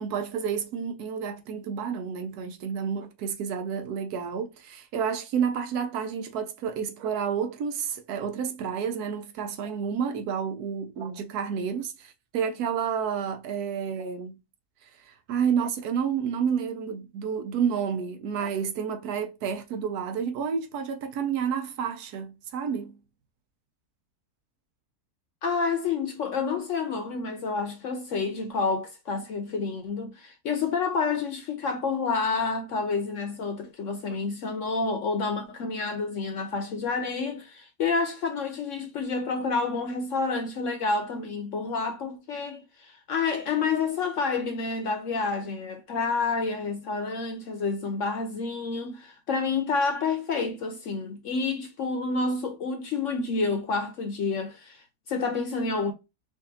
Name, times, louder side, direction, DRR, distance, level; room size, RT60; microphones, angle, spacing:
voice 1, 0.0-14.4 15.0-23.0, right 7 dB, 85° right, 1.2 m, -30 dB
voice 2, 25.4-55.9, left 4 dB, 65° left, 0.9 m, -29 dB
4.8 x 2.6 x 2.6 m
omnidirectional pair, 1.6 m